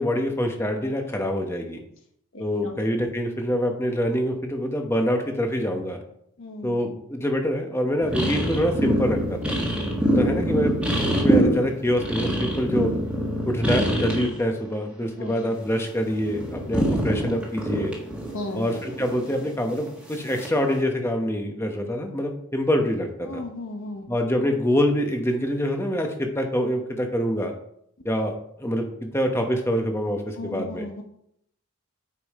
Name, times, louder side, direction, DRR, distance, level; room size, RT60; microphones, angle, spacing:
voice 1, 0.0-1.8 2.4-6.0 6.6-9.6 10.1-12.9 13.5-17.9 18.5-23.4 24.1-27.5 28.0-30.9, equal, 10° left, 4 dB, 1.0 m, -25 dB
voice 2, 2.3-2.8 6.4-6.8 9.9-10.2 15.2-15.3 18.3-18.8 23.3-24.1 30.4-31.0, left 1 dB, 65° left, 3 dB, 1.0 m, -36 dB
sound 1, 8.0-14.4 14.7-15.7 16.0-19.5 20.3-20.6, right 1 dB, 5° right, 1.6 m, -25 dB
8.5 x 5.5 x 4.2 m, 0.72 s
head